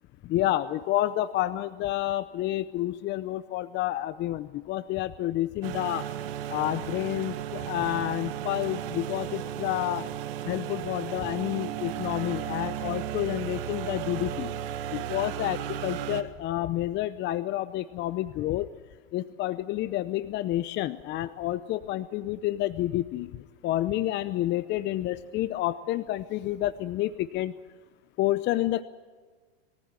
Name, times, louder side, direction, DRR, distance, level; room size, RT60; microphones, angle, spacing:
voice 1, 0.2-6.1 6.5-10.1 10.5-14.5 14.9-15.6 15.8-18.7 19.1-23.3 23.6-27.5 28.2-28.8, left 14 dB, 35° left, 15 dB, 0.8 m, -29 dB
sound 1, 5.6-16.2, right 10 dB, 65° right, 1.8 m, -35 dB
22.0 x 15.0 x 9.0 m, 1.4 s
hypercardioid pair, 105°, 30 cm